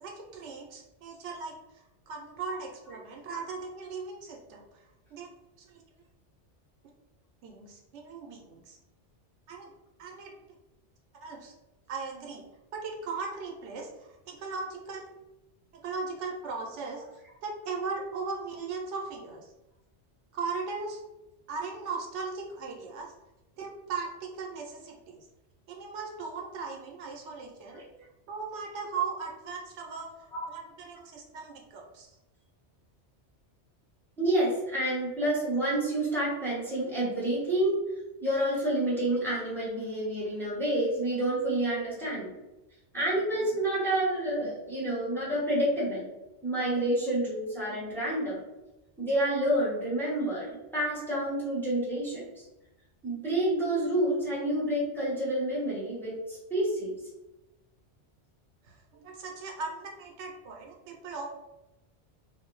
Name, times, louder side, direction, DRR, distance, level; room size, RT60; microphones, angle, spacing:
voice 1, 0.0-4.8 5.1-5.3 5.6-5.8 7.4-8.8 9.5-9.7 10.0-10.3 11.2-11.5 11.9-12.4 12.7-15.0 15.8-17.0 17.4-19.5 20.3-21.0 21.5-23.1 23.6-25.3 25.7-27.8 28.3-30.1 30.5-32.1 58.6-61.3, right 4 dB, 85° right, 0 dB, 0.9 m, -38 dB
voice 2, 34.2-37.8 38.2-42.3 42.9-46.0 46.4-48.4 49.0-52.3 53.0-56.9, right 1 dB, ahead, -7 dB, 0.8 m, -29 dB
2.5 x 2.0 x 3.0 m, 0.96 s
omnidirectional pair, 1.2 m